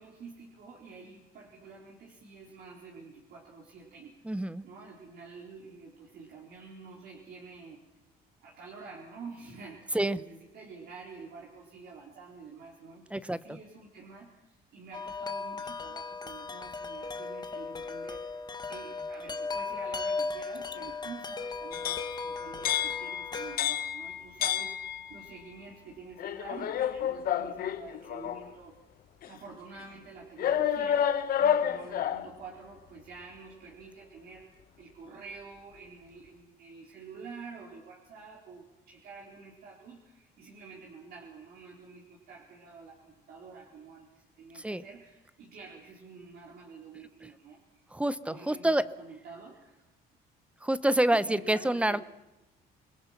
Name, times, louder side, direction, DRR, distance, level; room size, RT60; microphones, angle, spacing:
voice 1, 0.0-4.2 4.6-7.8 8.4-28.7 29.2-47.8 48.3-49.8 51.1-52.0, right 4 dB, 65° right, -2 dB, 4.3 m, -48 dB
voice 2, 4.2-4.6 9.9-10.2 13.1-13.6 44.5-44.8 47.2-47.3 47.9-48.8 50.6-52.0, right 1 dB, 5° right, 16 dB, 0.9 m, -27 dB
Wind chime, 14.9-23.6, left 4 dB, 25° left, 1.4 m, -37 dB
sound 1, 21.7-25.4 26.2-28.5 29.2-29.3 30.4-32.3, left 9 dB, 60° left, 1.3 m, -30 dB
28.0 x 21.0 x 6.0 m, 1.0 s
cardioid pair, 110°, 17 cm